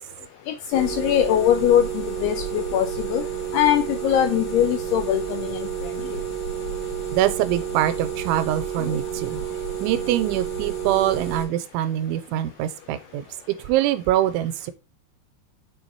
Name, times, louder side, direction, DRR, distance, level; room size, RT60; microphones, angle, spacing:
voice 1, 0.5-6.2 8.8-9.0, left 11 dB, 85° left, 2.3 m, -22 dB
sound 1, 0.7-11.5, right 7 dB, 50° left, 3.6 m, -30 dB
voice 2, 7.1-9.4 9.8-13.3 13.7-14.7, right 12 dB, 90° right, 3.2 m, -24 dB
7.0 x 4.9 x 4.6 m
omnidirectional pair, 5.3 m